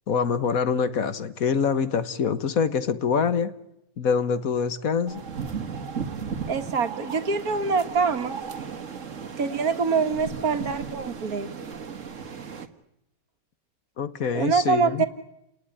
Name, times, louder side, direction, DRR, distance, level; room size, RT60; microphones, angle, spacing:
voice 1, 0.1-3.5 4.0-5.2 14.0-15.1, left 6 dB, 70° left, 13 dB, 1.7 m, -25 dB
sound 1, 5.1-12.7, right 6 dB, 60° right, 1.9 m, -35 dB
voice 2, 6.5-8.4 9.4-11.5 14.3-15.1, right 5 dB, 80° right, 9 dB, 2.1 m, -24 dB
29.5 x 19.5 x 9.9 m, 0.85 s
omnidirectional pair, 1.5 m